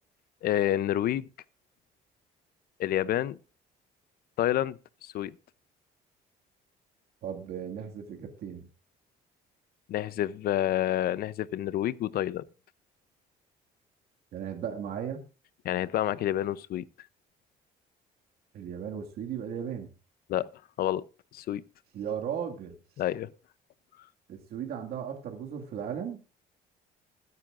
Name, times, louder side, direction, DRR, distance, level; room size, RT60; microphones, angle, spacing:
voice 1, 0.4-1.3 2.8-3.4 4.4-5.3 9.9-12.4 15.6-16.8 20.3-20.5 20.8-21.0 21.3-21.6 23.0-23.3, left 12 dB, 65° left, 0.7 m, -28 dB
voice 2, 7.2-8.7 14.3-15.2 18.5-19.9 21.9-22.8 24.3-26.2, right 8 dB, 70° right, 2.1 m, -36 dB
20.5 x 9.6 x 2.5 m
cardioid pair, 110°, 17 cm